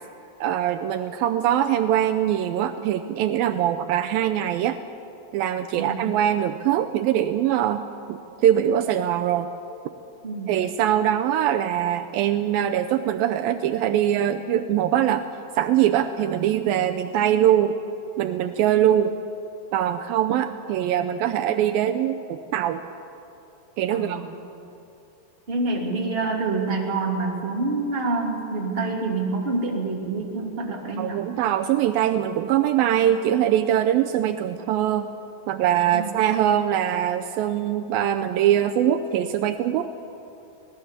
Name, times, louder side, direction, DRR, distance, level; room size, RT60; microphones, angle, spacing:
voice 1, 0.4-4.8 5.3-9.5 10.5-15.3 15.6-17.8 18.2-19.1 19.7-22.8 23.8-24.2 31.0-35.1 35.5-39.9, right 11 dB, 90° right, 7 dB, 2.1 m, -22 dB
voice 2, 5.7-6.1 10.2-10.6 23.9-24.3 25.5-31.3 35.9-36.1, right 3 dB, 15° right, -1 dB, 2.2 m, -27 dB
26.0 x 18.5 x 7.3 m, 2.9 s
omnidirectional pair, 4.9 m